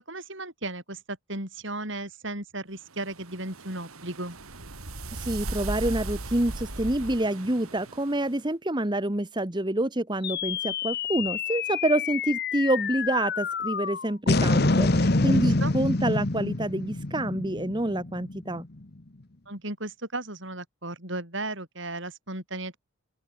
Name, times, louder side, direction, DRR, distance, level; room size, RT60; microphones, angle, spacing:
voice 1, 0.0-4.4 15.2-15.7 19.5-22.8, right 2 dB, 60° right, 7.4 m, -35 dB
sound 1, 3.0-8.3, right 2 dB, 85° right, 2.9 m, -37 dB
voice 2, 5.1-18.6, right 1 dB, 20° right, 1.3 m, -27 dB
sound 2, 10.2-18.8, left 3 dB, 45° left, 1.2 m, -27 dB
open air
head